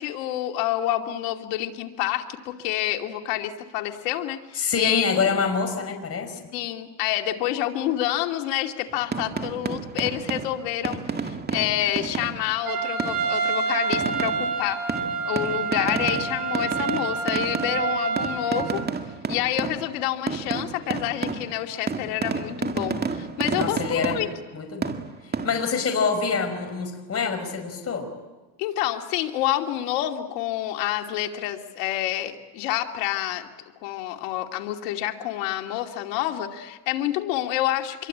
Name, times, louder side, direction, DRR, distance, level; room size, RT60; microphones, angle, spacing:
voice 1, 0.0-5.1 6.5-14.8 15.2-18.8 19.3-24.3 28.6-33.5 33.8-38.1, left 13 dB, 85° left, 4 dB, 2.7 m, -28 dB
voice 2, 4.5-6.4 23.6-24.2 24.5-25.0 25.4-28.1, left 5 dB, 30° left, 5 dB, 5.2 m, -25 dB
sound 1, 8.9-12.6 13.0-13.4 13.9-20.0 20.3-24.6 24.8-25.8, right 5 dB, 20° right, 2.0 m, -31 dB
Trumpet, 12.6-18.7, right 5 dB, 45° right, 5.5 m, -28 dB
26.5 x 23.0 x 8.7 m, 1.2 s
supercardioid pair, 110°, 47 cm